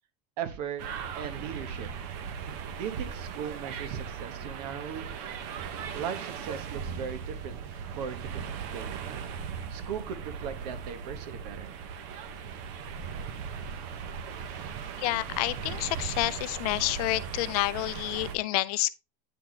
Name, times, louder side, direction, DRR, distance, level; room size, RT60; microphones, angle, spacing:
voice 1, 0.4-0.8 1.1-1.9 2.8-5.1 5.9-7.6 8.0-8.9 9.7-11.7, right 8 dB, 75° right, 1.1 m, -38 dB
sound 1, 0.8-18.4, right 7 dB, 55° right, 0.8 m, -38 dB
voice 2, 15.0-18.9, left 18 dB, 70° left, 0.4 m, -29 dB
9.0 x 4.0 x 3.2 m
cardioid pair, 170°, 21 cm